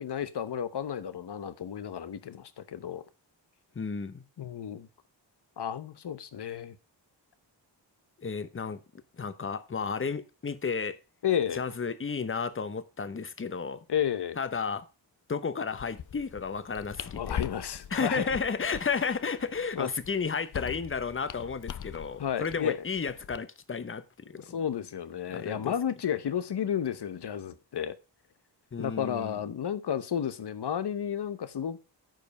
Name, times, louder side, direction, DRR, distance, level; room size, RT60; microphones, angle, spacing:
voice 1, 0.0-3.1 4.4-4.9 5.6-6.8 11.2-11.6 13.9-14.4 17.1-18.3 19.8-19.9 22.2-22.8 24.5-27.9 28.8-31.8, left 9 dB, 65° left, 1.0 m, -32 dB
voice 2, 3.7-4.2 8.2-8.8 9.1-11.0 11.5-13.8 14.4-14.9 15.3-17.4 17.9-24.6 25.3-25.7 28.7-29.3, left 5 dB, 30° left, 0.8 m, -33 dB
sound 1, 15.7-23.4, left 9 dB, 45° left, 0.5 m, -42 dB
9.2 x 5.3 x 5.3 m
wide cardioid pair, 95°, 44 cm